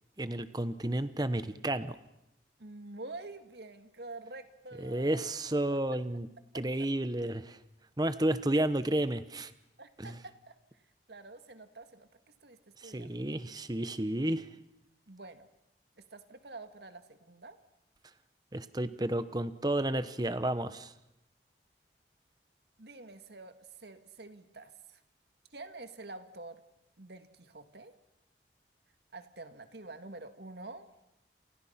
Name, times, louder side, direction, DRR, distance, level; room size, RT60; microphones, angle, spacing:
voice 1, 0.2-2.0 4.8-6.3 6.5-7.6 8.0-9.5 10.0-10.2 12.8-14.4 18.5-20.9, right 1 dB, 20° right, 12 dB, 1.0 m, -31 dB
voice 2, 2.6-5.4 5.7-6.0 6.8-6.9 8.5-8.7 9.8-10.6 11.1-12.1 12.4-13.1 15.1-15.5 16.0-17.6 22.8-25.0 25.5-26.6 27.0-28.0 29.1-30.9, right 2 dB, 70° right, 8 dB, 1.9 m, -47 dB
29.0 x 28.5 x 5.8 m, 0.88 s
head